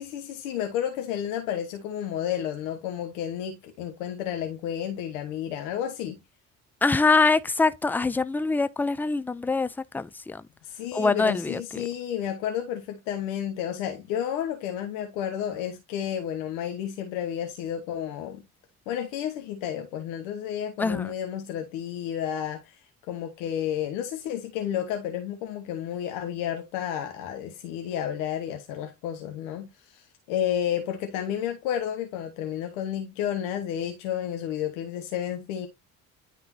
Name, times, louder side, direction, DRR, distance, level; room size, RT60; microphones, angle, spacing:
voice 1, 0.0-6.2 10.7-18.4 18.9-22.8 23.1-35.7, left 10 dB, 65° left, 1.1 m, -31 dB
voice 2, 6.8-9.7 9.9-10.4 10.9-11.8 20.8-21.1, left 3 dB, 5° left, 0.3 m, -24 dB
10.0 x 3.8 x 2.7 m
figure-of-eight pair, 50°, 42 cm